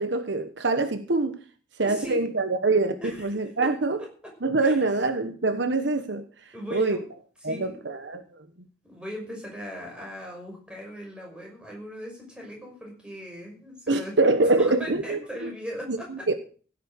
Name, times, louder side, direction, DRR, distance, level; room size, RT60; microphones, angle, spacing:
voice 1, 0.0-1.4 1.8-4.0 4.4-6.2 6.7-7.0 7.4-8.2 13.9-15.5 15.9-16.3, right 3 dB, 65° right, 1.1 m, -24 dB
voice 2, 1.8-2.3 3.0-3.7 4.6-4.8 6.5-7.0 7.4-7.7 8.8-14.1 14.6-16.3, equal, 5° right, 5.9 m, -38 dB
16.0 x 9.1 x 6.5 m
head